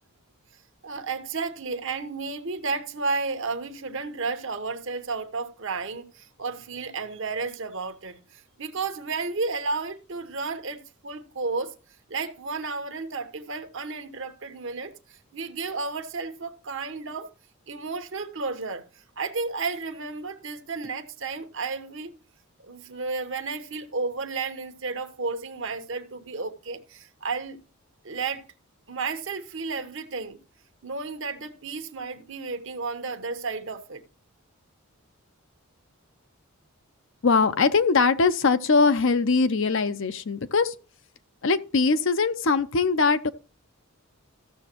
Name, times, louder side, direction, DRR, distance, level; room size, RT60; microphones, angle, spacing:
voice 1, 0.8-11.7 12.1-17.3 17.7-18.8 19.2-22.1 22.7-27.6 28.0-28.5 28.9-30.4 30.8-34.0, right 4 dB, 60° right, 1.1 m, -32 dB
voice 2, 37.2-40.7 41.4-43.3, left 4 dB, 60° left, 0.6 m, -21 dB
14.5 x 6.9 x 2.9 m
head